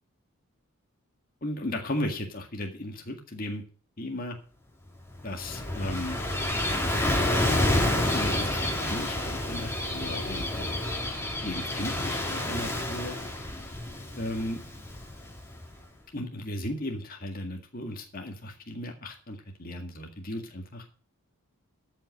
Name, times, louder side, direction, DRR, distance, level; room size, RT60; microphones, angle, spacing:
voice 1, 1.4-3.6 4.0-4.4 5.2-6.2 8.1-10.7 11.4-13.2 14.2-14.6 16.1-20.9, left 1 dB, 40° left, 2 dB, 1.9 m, -35 dB
Gull seagull / Waves surf, 5.1-15.7, left 1 dB, 10° left, 3.2 m, -29 dB
13.5 x 5.8 x 7.7 m, 0.38 s
head